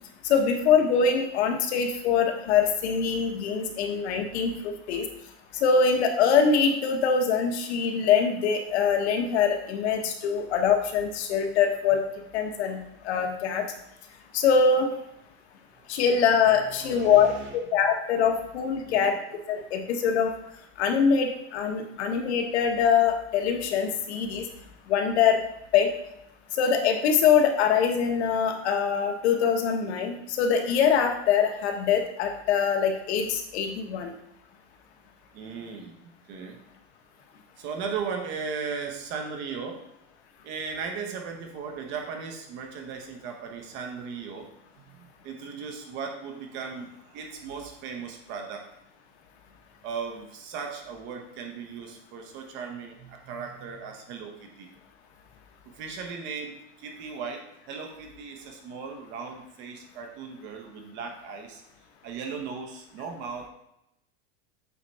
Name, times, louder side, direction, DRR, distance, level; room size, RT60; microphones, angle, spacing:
voice 1, 0.2-5.1 5.5-12.0 12.3-13.6 14.3-14.9 15.9-19.2 19.5-20.4 20.8-24.4 24.9-25.4 25.7-25.9 26.5-34.1, left 6 dB, 75° left, 4 dB, 1.3 m, -23 dB
voice 2, 16.7-17.5 18.8-19.1 35.3-36.0 36.3-36.6 37.6-39.8 40.4-44.5 44.8-48.7 49.8-54.7 55.7-61.6 62.0-63.5, right 5 dB, 35° right, 3 dB, 1.1 m, -37 dB
8.1 x 3.7 x 4.3 m, 0.81 s
supercardioid pair, 170°, 33 cm